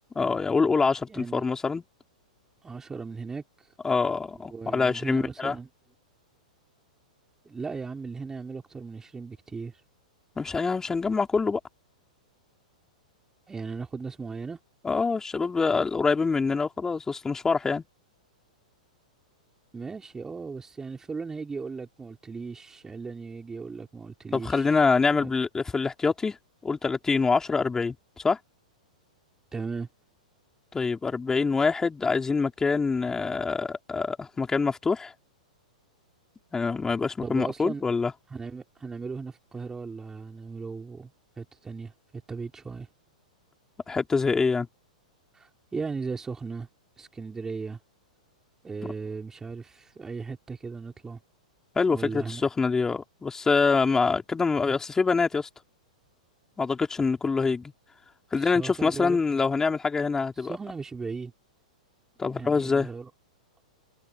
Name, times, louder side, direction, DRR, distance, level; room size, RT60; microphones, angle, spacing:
voice 1, 0.2-1.8 3.8-5.6 10.4-11.6 14.8-17.8 24.3-26.4 26.6-27.9 28.2-28.4 30.7-35.1 36.5-38.1 43.9-44.7 48.8-48.9 51.8-55.5 56.6-57.7 58.3-60.6 62.2-62.9, left 4 dB, 15° left, 3.6 m, -25 dB
voice 2, 1.1-1.4 2.6-3.7 4.5-5.7 7.4-9.8 13.5-14.6 19.7-24.8 25.2-25.3 29.5-29.9 37.2-37.8 38.3-41.1 41.4-42.9 45.3-46.7 47.0-47.8 48.6-51.2 51.9-52.4 58.4-59.2 60.4-61.3 62.2-63.1, right 4 dB, 15° right, 4.0 m, -37 dB
hypercardioid pair, 105°, 4 cm